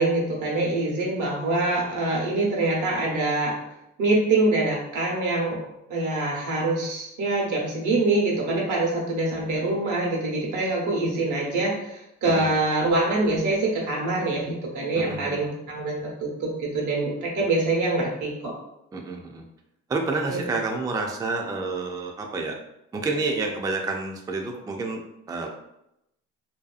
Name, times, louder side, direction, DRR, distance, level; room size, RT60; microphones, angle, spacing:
voice 1, 0.0-3.6 4.0-18.5 20.3-20.4, right 2 dB, 85° right, -2 dB, 1.0 m, -25 dB
voice 2, 14.9-15.4 18.9-19.4 19.9-22.6 22.9-25.0 25.3-25.5, right 3 dB, 15° right, 2 dB, 0.3 m, -29 dB
2.7 x 2.3 x 2.4 m, 0.83 s
cardioid pair, 90°, 30 cm